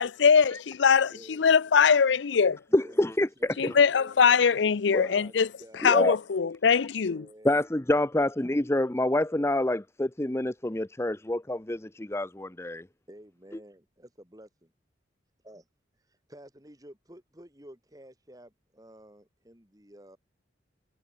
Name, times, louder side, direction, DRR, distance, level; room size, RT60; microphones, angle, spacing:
voice 1, 0.0-2.6 3.6-5.5 5.8-7.2, left 6 dB, 75° left, 0.5 m, -22 dB
voice 2, 1.1-1.4 2.7-3.0 3.4-4.2 5.0-6.1 7.0-7.6 13.1-14.7 15.5-15.6 16.3-20.2, right 1 dB, 20° right, 3.6 m, -51 dB
voice 3, 2.7-3.3 3.6-3.7 4.9-5.1 5.8-6.2 7.4-12.8, left 1 dB, 15° left, 0.7 m, -27 dB
head